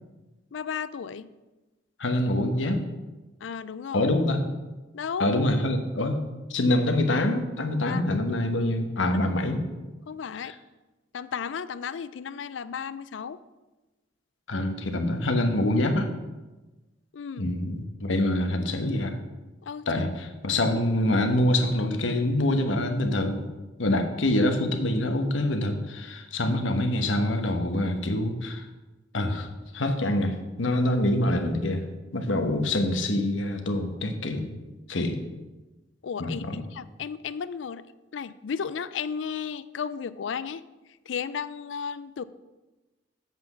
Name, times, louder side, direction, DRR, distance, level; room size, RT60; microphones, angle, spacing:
voice 1, 0.5-1.3 3.4-4.1 4.9-5.3 7.9-8.0 10.1-10.5 11.1-13.4 17.1-17.5 19.6-19.8 36.0-37.8 38.1-40.6 41.1-42.2, left 6 dB, 70° left, 16 dB, 0.4 m, -34 dB
voice 2, 2.0-2.8 3.9-4.4 5.2-6.2 6.5-9.6 10.4-10.5 14.5-16.1 17.4-19.2 19.9-23.5 23.8-28.7 29.1-29.5 29.7-31.8 32.1-34.5 34.9-35.2 36.2-36.6, left 1 dB, 85° left, 6 dB, 1.1 m, -25 dB
7.5 x 6.1 x 7.2 m, 1.1 s
head